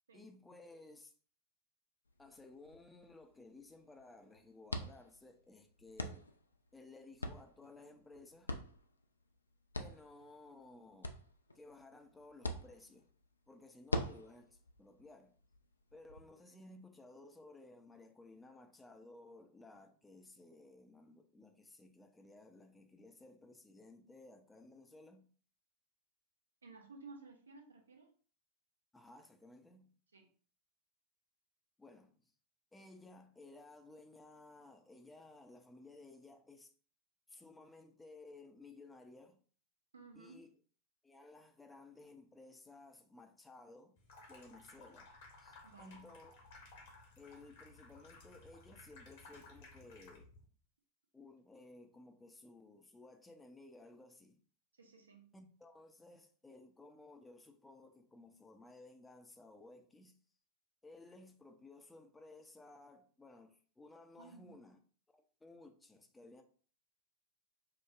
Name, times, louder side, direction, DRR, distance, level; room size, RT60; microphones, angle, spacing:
voice 1, 0.1-1.1 2.2-6.3 6.7-8.5 9.8-11.2 11.5-13.1 13.5-15.3 15.9-25.3 28.9-29.9 31.8-32.3 32.7-36.7 37.3-39.4 40.1-40.5 41.0-44.0 44.3-45.1 45.4-46.3 47.2-50.3 51.1-54.4 55.3-60.2 60.8-64.8 65.1-66.4, left 2 dB, 10° left, 0.4 m, -57 dB
sound 1, 2.0-16.2, left 1 dB, 80° left, 0.3 m, -46 dB
voice 2, 26.6-28.1 30.1-30.3 39.9-40.4 45.6-46.0 54.7-55.3 64.2-64.6, right 4 dB, 75° right, 0.6 m, -56 dB
Water tap faucet / Sink (filling or washing), 44.0-50.4, left 3 dB, 55° left, 0.9 m, -58 dB
4.8 x 2.0 x 2.4 m
figure-of-eight pair, 90°, 0 cm